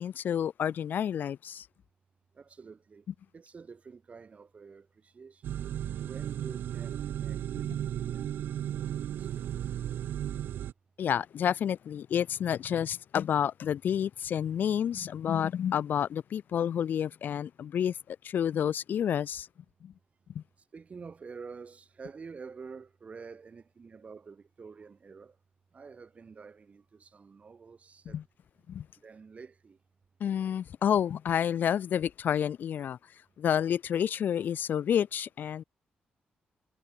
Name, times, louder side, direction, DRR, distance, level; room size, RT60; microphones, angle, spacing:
voice 1, 0.0-1.7 11.0-19.5 19.8-19.9 20.4-20.5 28.1-28.2 28.7-28.9 30.2-33.0 33.4-35.6, left 9 dB, 65° left, 0.4 m, -29 dB
voice 2, 2.3-3.1 3.3-5.6 6.0-10.0 20.6-25.4 25.7-28.2 29.0-29.8, right 5 dB, 40° right, 2.3 m, -49 dB
sound 1, 5.4-10.7, right 11 dB, 80° right, 1.0 m, -35 dB
cardioid pair, 85°, 3 cm